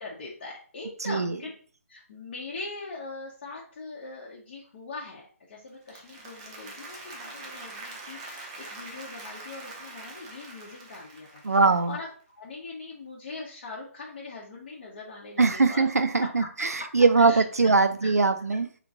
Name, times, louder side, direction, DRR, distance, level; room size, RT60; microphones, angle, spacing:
voice 1, 0.0-1.5 1.9-12.1 12.4-15.9 16.8-17.7 18.0-18.1, left 3 dB, 40° left, -5 dB, 0.8 m, -41 dB
Applause, 5.7-11.9, right 2 dB, 25° right, 0.6 m, -44 dB
voice 2, 11.4-12.0 15.4-18.7, right 4 dB, 80° right, 9 dB, 0.5 m, -21 dB
3.0 x 2.4 x 3.9 m, 0.43 s
figure-of-eight pair, 150°, 8 cm